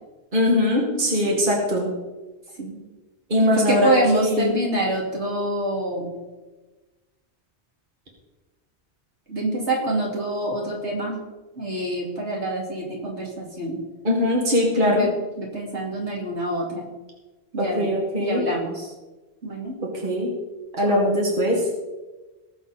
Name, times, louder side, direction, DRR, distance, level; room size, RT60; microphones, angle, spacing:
voice 1, 0.3-1.9 3.3-4.5 14.0-15.1 17.6-18.4 19.8-20.3 20.8-21.6, left 1 dB, 50° right, -2 dB, 2.2 m, -21 dB
voice 2, 0.9-1.4 2.6-2.8 3.4-6.1 9.3-11.2 11.5-13.8 14.9-15.1 15.4-16.9 17.5-17.9 18.2-18.9 19.4-19.8 20.8-21.2, right 1 dB, 80° right, -3 dB, 3.1 m, -26 dB
19.0 x 7.1 x 4.2 m, 1.2 s
omnidirectional pair, 1.1 m